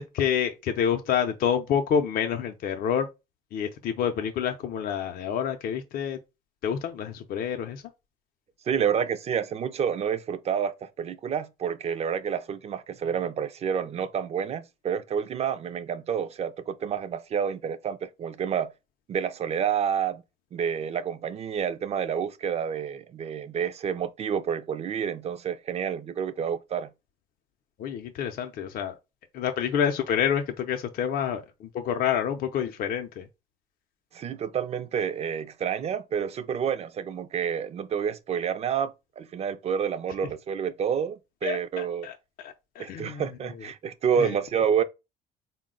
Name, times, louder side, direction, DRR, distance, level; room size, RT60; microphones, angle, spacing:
voice 1, 0.0-3.1 3.5-6.2 6.6-7.8 27.8-29.0 29.3-33.3 41.4-43.7 44.2-44.3, left 8 dB, 60° left, 0.5 m, -28 dB
voice 2, 8.7-18.7 19.1-20.2 20.5-26.9 34.1-42.1 42.8-44.8, right 7 dB, 40° right, 0.4 m, -29 dB
4.0 x 2.1 x 3.7 m
cardioid pair, 110°, 17 cm